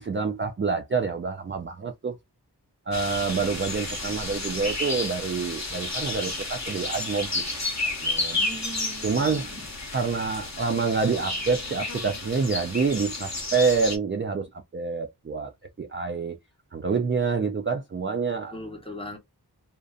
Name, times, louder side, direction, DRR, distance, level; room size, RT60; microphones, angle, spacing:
voice 1, 0.0-2.1 2.9-7.4 8.0-8.4 9.0-9.5 9.9-14.5 14.7-15.5 15.8-16.4 16.7-18.6, right 5 dB, 30° right, 0.4 m, -27 dB
sound 1, 2.9-14.0, left 2 dB, 40° left, 0.8 m, -31 dB
voice 2, 8.3-9.7 18.5-19.2, equal, 15° left, 0.9 m, -39 dB
2.5 x 2.2 x 2.4 m
wide cardioid pair, 45°, 40 cm